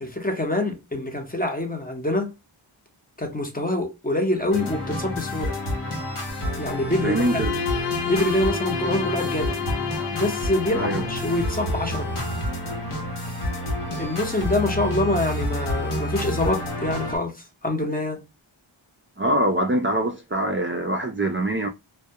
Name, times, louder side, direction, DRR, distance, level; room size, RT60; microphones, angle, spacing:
voice 1, 0.0-2.3 3.2-5.6 6.6-7.6 8.0-9.6 10.1-12.1 14.0-18.2, left 1 dB, 20° left, 0.7 m, -25 dB
sound 1, 4.5-17.2, left 1 dB, 80° left, 1.0 m, -29 dB
Bowed string instrument, 6.9-11.8, left 6 dB, 60° left, 0.6 m, -30 dB
voice 2, 7.0-7.5 10.7-11.0 19.2-21.7, right 1 dB, 25° right, 0.4 m, -23 dB
2.2 x 2.1 x 2.7 m
wide cardioid pair, 50°, 49 cm